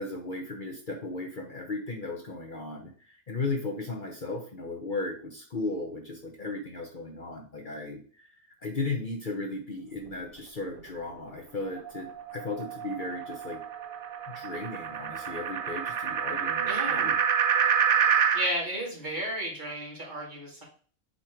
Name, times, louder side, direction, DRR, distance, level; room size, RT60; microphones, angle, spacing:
voice 1, 0.0-13.6 14.3-17.2, left 3 dB, 45° left, 1 dB, 1.1 m, -36 dB
sound 1, 11.8-18.5, right 7 dB, 55° right, 0.8 m, -27 dB
voice 2, 16.7-17.2 18.3-20.6, right 1 dB, 40° right, -3 dB, 2.3 m, -33 dB
8.1 x 3.2 x 4.5 m, 0.43 s
omnidirectional pair, 1.3 m